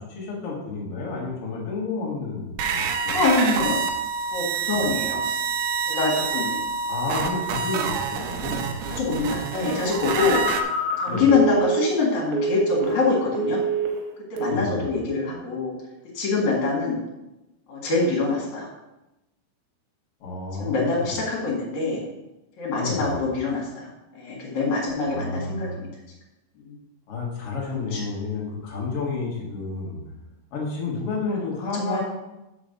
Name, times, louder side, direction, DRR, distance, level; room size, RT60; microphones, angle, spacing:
voice 1, 0.0-3.2 3.6-3.7 4.7-4.9 6.9-8.7 11.1-11.3 14.5-14.9 20.2-21.1 22.7-23.2 25.0-25.8 27.1-30.0 30.5-32.0, left 4 dB, 90° left, -5 dB, 1.2 m, -31 dB
sound 1, 2.6-10.6, right 5 dB, 85° right, 2.4 m, -27 dB
voice 2, 3.1-3.8 4.3-5.2 5.9-6.6 8.9-10.6 11.0-13.6 14.3-15.7 16.1-17.0 17.7-18.7 20.6-22.0 22.6-23.9 24.1-25.9 26.6-26.7 27.9-28.0 31.7-32.0, left 3 dB, 50° left, -3 dB, 2.6 m, -24 dB
Telephone, 10.0-13.1 13.3-14.0 14.4-14.7, right 4 dB, 70° right, 2.8 m, -26 dB
6.1 x 5.0 x 6.6 m, 0.95 s
omnidirectional pair, 5.7 m